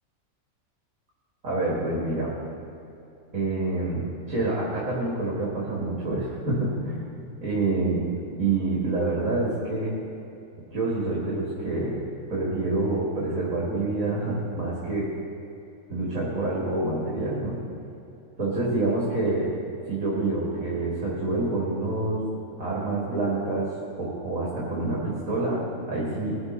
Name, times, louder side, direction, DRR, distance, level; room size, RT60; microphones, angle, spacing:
voice 1, 1.4-2.3 3.3-8.0 8.4-9.9 10.7-12.0 12.3-15.1 15.9-17.6 18.4-19.5 19.9-22.3 22.6-23.7 24.0-25.6 25.9-26.4, right 2 dB, 75° right, -6 dB, 2.7 m, -27 dB
20.5 x 7.9 x 4.1 m, 2.8 s
omnidirectional pair, 1.5 m